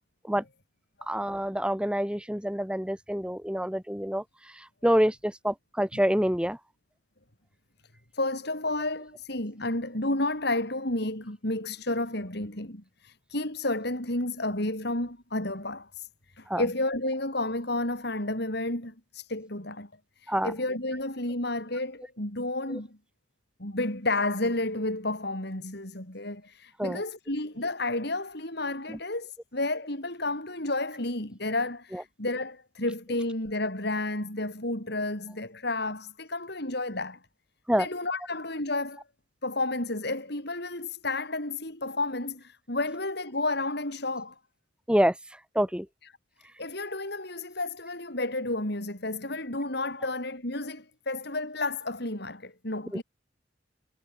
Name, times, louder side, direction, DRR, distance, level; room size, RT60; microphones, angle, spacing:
voice 1, 1.1-4.2 4.5-6.6 16.5-16.6 20.3-20.5 26.8-27.0 28.9-29.0 31.9-32.0 37.7-37.9 44.9-45.2 45.6-45.9 52.9-53.0, equal, 5° right, 1.8 m, -27 dB
voice 2, 8.1-19.9 20.2-23.0 23.6-37.2 37.8-39.0 39.4-44.4 46.6-53.0, left 2 dB, 60° left, 6.2 m, -31 dB
head